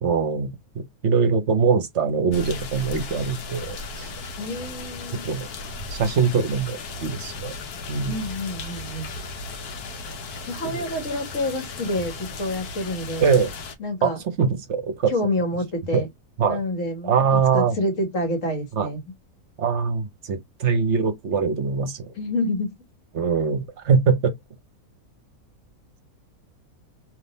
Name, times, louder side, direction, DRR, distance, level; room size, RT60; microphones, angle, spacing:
voice 1, 0.0-4.1 5.2-5.5 5.9-7.5 7.9-8.2 10.6-10.9 13.2-13.5 14.0-14.1 14.4-15.1 15.9-16.0 16.4-16.6 17.0-17.8 18.8-18.9 19.6-22.1 23.1-24.3, right 5 dB, 55° right, 1.0 m, -22 dB
sound 1, 2.3-13.8, left 3 dB, 80° left, 1.3 m, -36 dB
voice 2, 4.4-5.3 8.1-9.1 10.5-13.3 13.8-14.2 15.1-16.1 16.5-19.0 22.1-22.7, left 1 dB, 55° left, 1.7 m, -28 dB
3.6 x 3.1 x 4.0 m
omnidirectional pair, 1.6 m